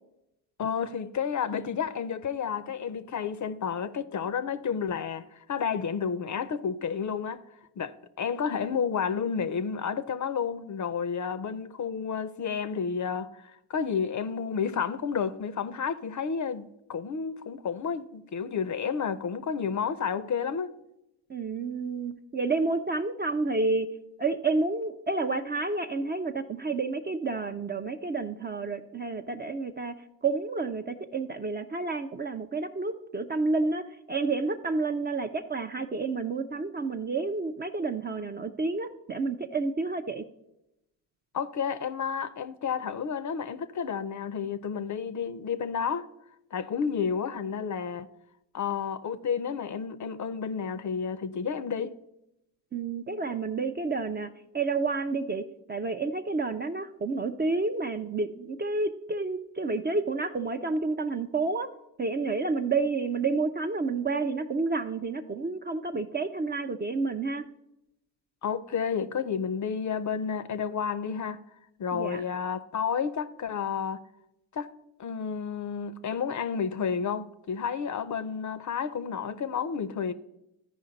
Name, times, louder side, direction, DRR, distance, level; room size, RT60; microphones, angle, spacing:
voice 1, 0.6-7.4 7.8-20.7 41.3-46.1 46.5-48.1 48.5-51.9 68.4-71.4 71.8-74.0 74.5-74.7 75.0-80.1, left 6 dB, 40° left, 0.6 m, -31 dB
voice 2, 21.3-23.9 24.2-30.0 30.2-40.2 52.7-61.7 62.0-67.4 71.9-72.2, right 3 dB, 20° right, 0.4 m, -30 dB
13.5 x 5.0 x 3.9 m
supercardioid pair, 70°, 49 cm